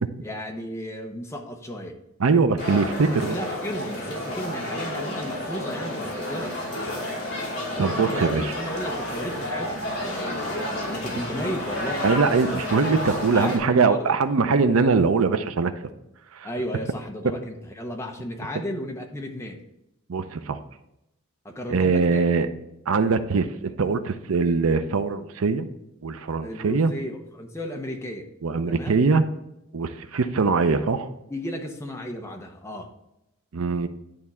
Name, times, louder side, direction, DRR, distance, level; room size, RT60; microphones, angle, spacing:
voice 1, 0.2-2.0 3.1-6.6 7.8-12.0 13.3-14.2 16.4-19.6 21.4-22.2 26.4-28.3 28.7-28.9 31.3-32.9, equal, 15° left, 2 dB, 0.8 m, -34 dB
voice 2, 2.2-3.4 7.8-8.5 12.0-15.7 16.4-16.5 20.1-20.6 21.7-22.5 22.9-25.7 26.0-26.9 28.4-29.2 29.7-31.1 33.5-33.9, right 4 dB, 80° right, 10 dB, 0.6 m, -22 dB
sound 1, 2.6-13.6, left 1 dB, 50° left, 2.9 m, -30 dB
10.5 x 3.6 x 4.3 m, 0.86 s
head